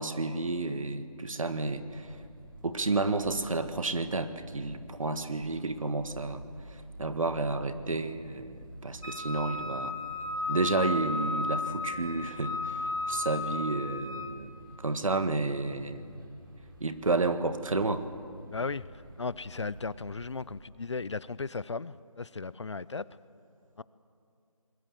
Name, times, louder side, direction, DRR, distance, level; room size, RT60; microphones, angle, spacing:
voice 1, 0.0-2.2 2.6-6.4 6.7-10.0 10.5-16.0 16.8-18.0, right 3 dB, 65° right, 10 dB, 1.6 m, -31 dB
sound 1, 1.5-20.6, right 1 dB, 35° right, 3.9 m, -50 dB
Wind instrument woodwind instrument, 9.0-14.4, left 3 dB, 70° left, 3.3 m, -34 dB
voice 2, 18.5-18.9 19.2-23.0 23.8-23.9, left 4 dB, 50° left, 19 dB, 0.5 m, -36 dB
26.0 x 21.0 x 7.5 m, 2.4 s
figure-of-eight pair, 170°, 18 cm